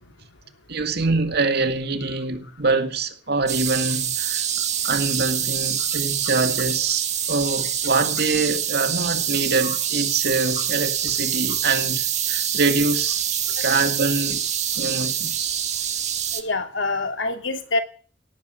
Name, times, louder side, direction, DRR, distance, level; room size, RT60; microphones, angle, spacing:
voice 1, 0.7-13.2 13.6-14.5 14.8-15.5, right 3 dB, 60° right, 2.1 m, -25 dB
sound 1, 3.5-16.4, right 9 dB, 40° right, 1.6 m, -25 dB
voice 2, 16.3-17.8, left 3 dB, 90° left, 2.9 m, -26 dB
18.0 x 7.3 x 10.0 m
head